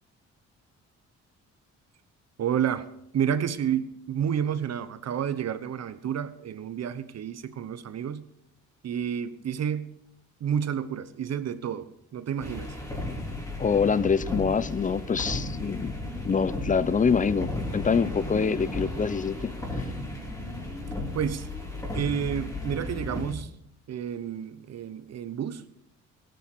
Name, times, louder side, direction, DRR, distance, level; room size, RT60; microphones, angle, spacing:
voice 1, 2.4-8.2 8.8-9.9 10.4-12.7 21.1-21.5 21.9-23.5 23.9-25.6, right 8 dB, 60° right, 14 dB, 1.2 m, -30 dB
sound 1, 12.4-23.3, left 2 dB, 10° left, 3.8 m, -34 dB
voice 2, 13.6-16.0 16.2-19.5, left 5 dB, 25° left, 18 dB, 0.7 m, -25 dB
17.0 x 9.3 x 6.8 m, 0.76 s
cardioid pair, 90°, 30 cm